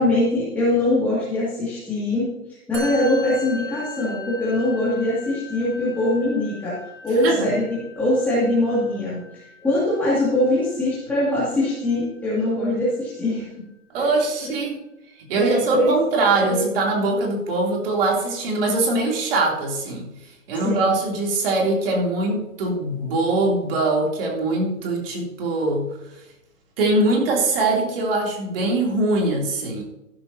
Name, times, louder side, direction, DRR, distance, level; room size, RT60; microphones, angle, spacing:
voice 1, 0.0-2.3 2.7-13.5 14.0-14.1 15.3-15.9 16.4-16.7 20.5-21.0, left 1 dB, 5° left, -11 dB, 2.4 m, -22 dB
Musical instrument, 2.7-12.3, left 2 dB, 55° right, 4.6 m, -38 dB
voice 2, 13.9-14.8 15.3-20.1 20.5-25.9 26.8-29.8, right 2 dB, 40° right, -1 dB, 3.4 m, -22 dB
14.0 x 12.0 x 2.9 m, 0.92 s
hypercardioid pair, 160°, 45 cm